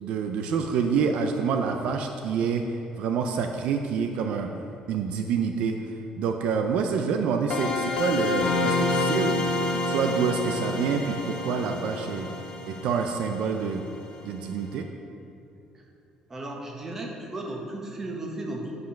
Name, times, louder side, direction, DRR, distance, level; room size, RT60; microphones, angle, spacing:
voice 1, 0.0-4.5 4.9-5.8 6.2-12.3 12.7-13.8 14.2-14.9, right 6 dB, 70° right, 5 dB, 0.5 m, -27 dB
sound 1, 7.5-14.2, left 2 dB, 50° left, 0.9 m, -28 dB
voice 2, 16.3-18.8, right 1 dB, 20° right, 0 dB, 1.1 m, -35 dB
8.0 x 5.2 x 5.9 m, 2.7 s
cardioid pair, 150°, 2 cm